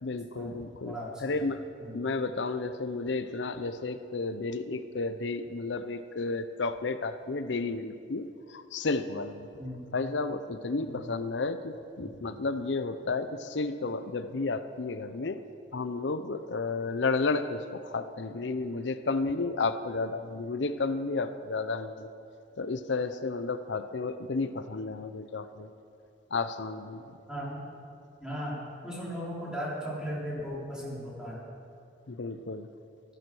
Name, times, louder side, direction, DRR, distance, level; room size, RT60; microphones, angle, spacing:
voice 1, 0.0-1.6 1.9-9.5 9.9-15.4 15.7-22.1 22.6-25.7 26.3-27.0 32.1-32.7, left 3 dB, 85° left, 11 dB, 0.7 m, -32 dB
voice 2, 0.8-1.3 1.8-2.0 9.6-9.8 10.8-11.0 27.3-27.6 28.2-28.6 28.8-31.4, equal, 5° right, -6 dB, 3.9 m, -37 dB
16.0 x 12.5 x 6.2 m, 2.5 s
head